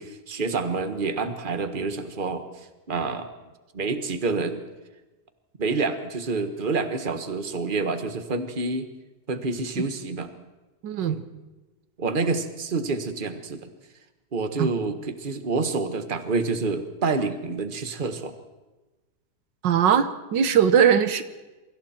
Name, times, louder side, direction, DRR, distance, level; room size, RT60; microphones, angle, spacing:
voice 1, 0.0-2.4 2.9-3.3 3.7-4.6 5.6-8.9 9.3-10.3 11.1-11.2 12.0-13.7 14.3-18.3, right 3 dB, 30° right, 8 dB, 1.5 m, -28 dB
voice 2, 10.8-11.2 14.6-14.7 19.6-21.2, right 8 dB, 90° right, 12 dB, 1.8 m, -20 dB
28.0 x 25.0 x 4.5 m, 1.1 s
omnidirectional pair, 1.9 m